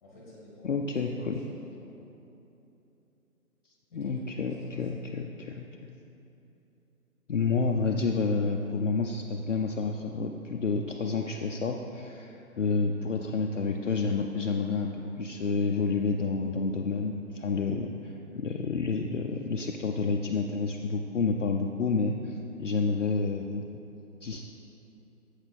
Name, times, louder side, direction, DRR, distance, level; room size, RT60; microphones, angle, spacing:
voice 1, 0.0-2.1 3.9-4.9 12.5-12.8 17.7-18.0, left 1 dB, 10° left, -5 dB, 1.1 m, -50 dB
voice 2, 0.6-1.4 3.9-5.7 7.3-17.9 18.3-23.6 24.2-24.4, left 4 dB, 55° left, 1 dB, 0.5 m, -29 dB
7.8 x 6.3 x 4.1 m, 2.9 s
figure-of-eight pair, 160°, 45 cm